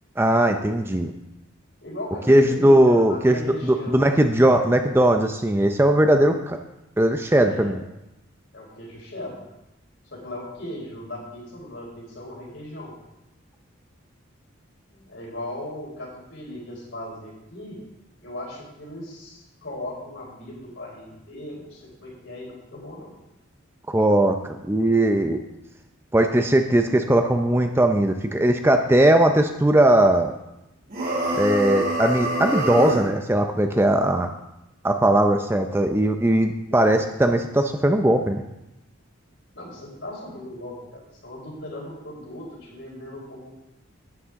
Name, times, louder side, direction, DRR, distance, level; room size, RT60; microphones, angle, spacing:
voice 1, 0.2-1.1 2.3-6.6 7.0-7.8 23.9-25.4 26.1-30.3 31.4-34.3 34.8-38.4, right 1 dB, 10° right, 6 dB, 0.5 m, -19 dB
voice 2, 1.8-4.7 7.4-7.8 8.5-9.5 10.1-12.9 14.9-17.8 18.2-23.1 39.5-43.5, left 1 dB, 65° left, -3 dB, 4.3 m, -38 dB
sound 1, 30.9-33.1, right 1 dB, 45° right, 3.2 m, -26 dB
11.0 x 9.9 x 3.6 m, 0.92 s
head